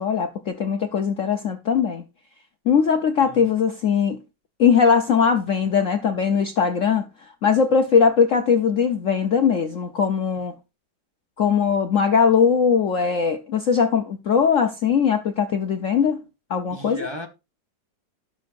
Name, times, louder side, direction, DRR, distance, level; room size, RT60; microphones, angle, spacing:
voice 1, 0.0-2.0 2.7-4.2 4.6-7.1 7.4-10.5 11.4-16.2 16.5-17.0, left 6 dB, 55° left, 0.9 m, -20 dB
voice 2, 16.7-17.3, equal, 15° right, 1.1 m, -35 dB
17.5 x 6.3 x 2.5 m
omnidirectional pair, 2.0 m